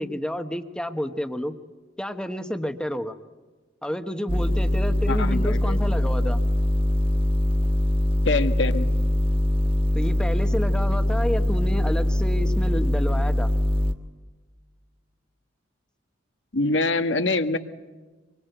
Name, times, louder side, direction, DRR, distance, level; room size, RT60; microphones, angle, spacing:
voice 1, 0.0-1.5 2.0-3.2 3.8-6.4 9.9-13.5, equal, 5° left, 7 dB, 1.1 m, -30 dB
sound 1, 4.3-13.9, left 1 dB, 30° right, 1.4 m, -22 dB
voice 2, 5.1-5.8 8.2-8.9 16.5-17.6, left 2 dB, 75° left, 8 dB, 1.6 m, -24 dB
26.0 x 23.0 x 8.0 m, 1.3 s
head